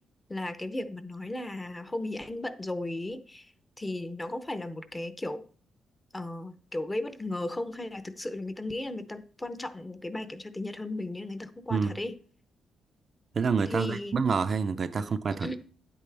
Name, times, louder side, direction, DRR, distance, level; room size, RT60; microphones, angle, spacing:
voice 1, 0.3-5.4 6.1-12.1 13.7-14.2 15.0-15.1 15.4-15.7, left 1 dB, 15° left, 0.7 m, -35 dB
voice 2, 13.3-15.5, right 5 dB, 40° right, 0.5 m, -27 dB
9.8 x 8.4 x 3.4 m
cardioid pair, 145°, 0 cm